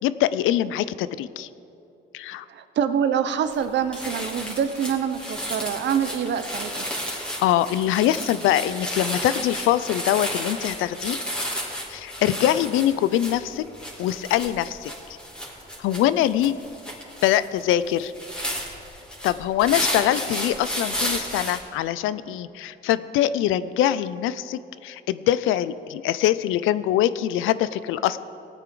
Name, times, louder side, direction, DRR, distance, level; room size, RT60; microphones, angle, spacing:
voice 1, 0.0-1.5 2.1-2.4 7.1-11.2 11.9-13.6 14.0-14.9 15.8-16.6 17.2-18.1 19.2-28.2, left 12 dB, 90° left, 15 dB, 0.4 m, -23 dB
voice 2, 2.5-6.8, right 8 dB, 65° right, 10 dB, 0.8 m, -25 dB
sound 1, 3.5-3.7 3.9-21.6, equal, 5° left, 2.6 m, -32 dB
17.5 x 9.2 x 3.8 m, 2.8 s
cardioid pair, 90°, 20 cm